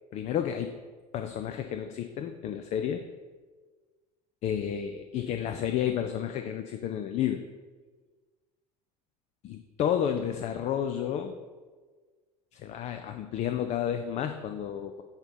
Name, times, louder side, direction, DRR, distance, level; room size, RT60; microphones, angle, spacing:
voice 1, 0.1-0.8 1.1-3.0 4.4-7.5 9.4-11.4 12.5-15.0, left 9 dB, 35° left, 7 dB, 0.4 m, -31 dB
8.0 x 2.9 x 5.2 m, 1.4 s
figure-of-eight pair, 65°, 21 cm